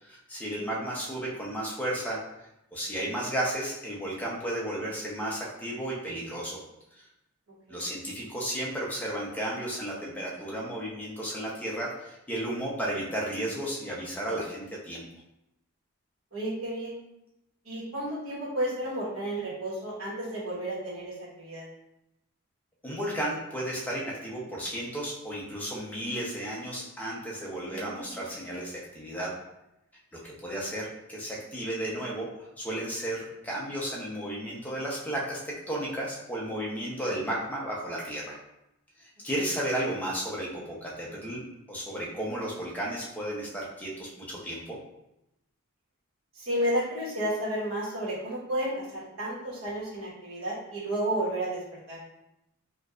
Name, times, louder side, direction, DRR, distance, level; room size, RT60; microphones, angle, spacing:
voice 1, 0.0-2.2 2.7-6.6 6.9-7.0 7.7-15.0 22.8-29.3 30.2-32.3 32.6-38.4 39.0-41.4 41.7-44.8, right 1 dB, 5° left, -4 dB, 0.7 m, -33 dB
voice 2, 16.3-17.0 17.6-21.7 27.6-28.4 46.3-52.0, right 1 dB, 65° right, -6 dB, 1.3 m, -32 dB
4.5 x 2.5 x 2.4 m, 0.87 s
head